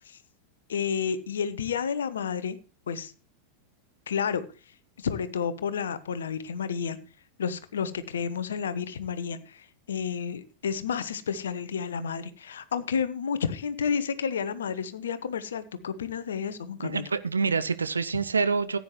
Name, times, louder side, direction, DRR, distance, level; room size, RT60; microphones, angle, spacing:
voice 1, 0.7-2.6 2.9-3.1 4.1-4.4 5.0-7.0 7.4-17.1, left 7 dB, 65° left, 1.0 m, -31 dB
voice 2, 16.8-18.8, right 5 dB, 75° right, 0.6 m, -26 dB
15.0 x 9.4 x 3.1 m
figure-of-eight pair, 90°, 0 cm